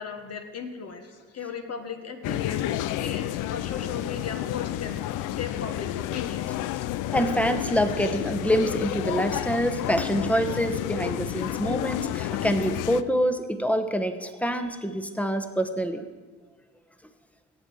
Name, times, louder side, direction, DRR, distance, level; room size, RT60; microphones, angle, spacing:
voice 1, 0.0-5.0 5.3-6.5, left 6 dB, 55° left, 6 dB, 1.6 m, -37 dB
sound 1, 2.2-13.0, left 13 dB, 90° left, 0.5 m, -30 dB
voice 2, 7.1-16.0, equal, 5° left, 8 dB, 1.0 m, -26 dB
17.5 x 7.5 x 4.7 m, 1.4 s
cardioid pair, 90°, 30 cm